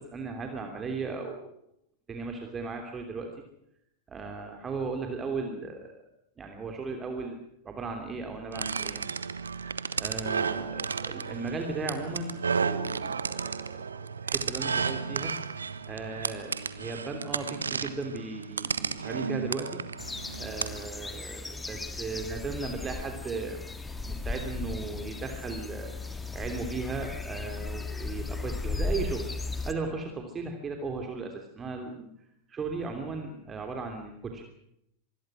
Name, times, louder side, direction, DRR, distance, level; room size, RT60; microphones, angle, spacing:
voice 1, 0.0-1.5 2.1-3.3 4.1-5.9 6.4-9.0 9.6-13.7 14.2-15.3 15.9-19.8 20.4-23.6 24.1-25.9 26.3-29.3 29.6-32.1 32.5-34.4, right 4 dB, 20° right, 4 dB, 3.1 m, -36 dB
sound 1, 8.5-20.9, right 5 dB, 75° right, 1.3 m, -33 dB
sound 2, 20.0-29.7, left 3 dB, 10° left, 1.9 m, -36 dB
26.0 x 20.5 x 6.3 m, 0.76 s
figure-of-eight pair, 90°, 0 cm